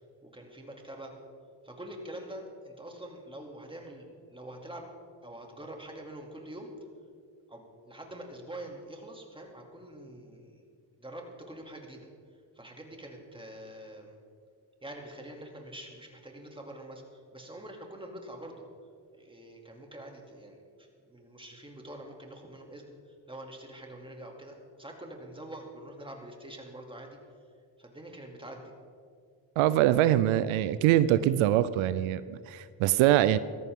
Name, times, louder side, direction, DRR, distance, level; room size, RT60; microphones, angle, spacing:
voice 1, 0.2-1.1 1.6-4.9 5.2-6.7 7.5-10.6 11.0-12.1 12.5-14.2 14.8-18.6 19.2-27.2 27.8-28.7, right 1 dB, 10° right, 1 dB, 2.7 m, -45 dB
voice 2, 29.6-33.4, right 13 dB, 85° right, 15 dB, 0.6 m, -24 dB
17.5 x 13.5 x 3.7 m, 2.1 s
supercardioid pair, 70°, 47 cm